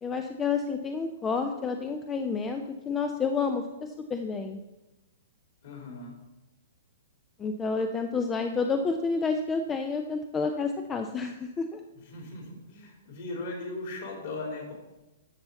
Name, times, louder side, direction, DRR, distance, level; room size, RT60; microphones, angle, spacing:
voice 1, 0.0-3.6 4.1-4.6 7.4-11.8, left 4 dB, 15° left, 6 dB, 0.5 m, -29 dB
voice 2, 5.6-6.1 11.9-14.7, left 2 dB, 50° left, -1 dB, 3.3 m, -38 dB
10.5 x 6.9 x 4.0 m, 1.0 s
figure-of-eight pair, 110°, 0 cm